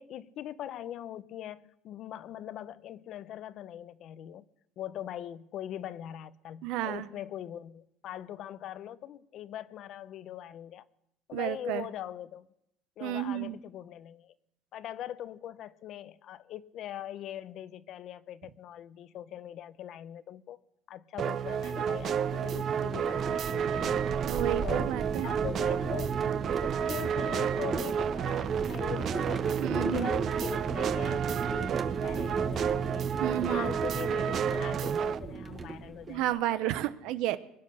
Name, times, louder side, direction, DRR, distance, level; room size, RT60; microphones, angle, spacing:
voice 1, 0.0-4.5 4.8-10.8 11.3-12.5 13.0-14.3 14.7-20.6 20.9-24.0 24.6-24.9 25.2-26.2 26.5-29.4 29.8-33.1 33.5-36.6, left 11 dB, 55° left, 0.7 m, -41 dB
voice 2, 6.6-7.1 11.3-11.9 13.0-13.6 24.3-25.3 29.6-30.1 33.2-33.7 36.1-37.4, right 13 dB, 75° right, 0.8 m, -31 dB
sound 1, 21.2-35.2, right 8 dB, 45° right, 0.5 m, -31 dB
sound 2, 21.4-36.4, right 4 dB, 30° right, 1.1 m, -36 dB
22.0 x 9.8 x 6.4 m
cardioid pair, 120°, 0 cm